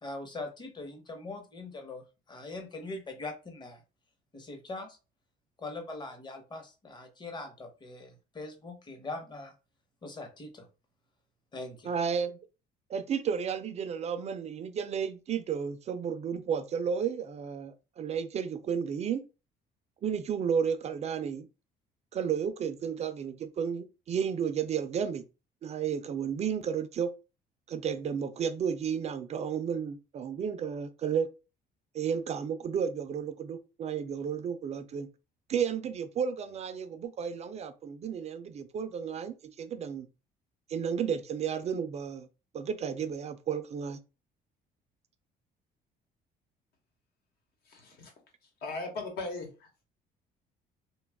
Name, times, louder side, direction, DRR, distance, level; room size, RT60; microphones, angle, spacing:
voice 1, 0.0-2.0 2.3-3.8 4.3-5.0 5.6-9.5 10.0-10.7 11.5-11.9, left 2 dB, 25° left, 0.9 m, -41 dB
voice 2, 11.8-12.4 12.9-19.2 20.0-21.5 22.1-25.2 25.6-27.1 27.7-31.3 31.9-35.1 35.5-40.1 40.7-42.3 42.5-44.0, right 7 dB, 40° right, 0.4 m, -32 dB
voice 3, 47.6-48.1 48.4-49.7, left 3 dB, 70° left, 1.1 m, -38 dB
2.7 x 2.3 x 3.4 m
cardioid pair, 110°, 17 cm